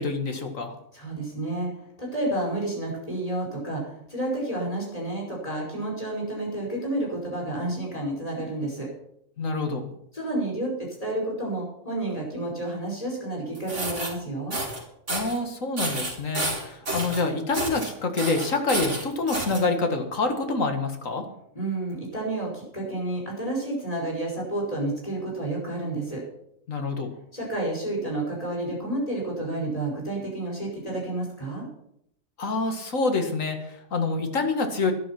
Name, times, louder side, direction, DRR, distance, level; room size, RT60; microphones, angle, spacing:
voice 1, 0.0-0.8 9.4-9.9 15.1-21.2 26.7-27.1 32.4-34.9, left 3 dB, 75° left, 5 dB, 2.3 m, -27 dB
voice 2, 0.9-1.7 2.0-8.9 10.1-14.6 21.5-26.2 27.3-31.7, right 2 dB, 25° left, -2 dB, 5.5 m, -30 dB
sound 1, 13.5-14.1 14.5-14.8 15.1-15.4 15.8-17.2 17.5-17.9 18.2-19.6, right 2 dB, 65° right, 3.9 m, -30 dB
12.5 x 11.5 x 6.0 m, 0.74 s
omnidirectional pair, 1.4 m